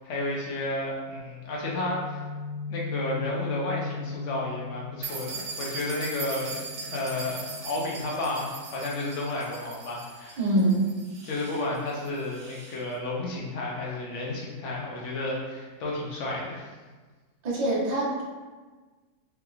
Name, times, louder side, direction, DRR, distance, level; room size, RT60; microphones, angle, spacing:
voice 1, 0.0-2.2 2.7-10.4 11.2-16.7, left 2 dB, 55° left, -4 dB, 0.9 m, -32 dB
Guitar, 1.6-9.4, left 4 dB, 85° left, 1.2 m, -39 dB
sound 1, 5.0-12.8, right 4 dB, 80° right, 1.2 m, -40 dB
voice 2, 10.4-10.9 17.4-18.2, right 1 dB, 40° right, -6 dB, 0.6 m, -24 dB
3.4 x 3.1 x 2.4 m, 1.3 s
omnidirectional pair, 1.7 m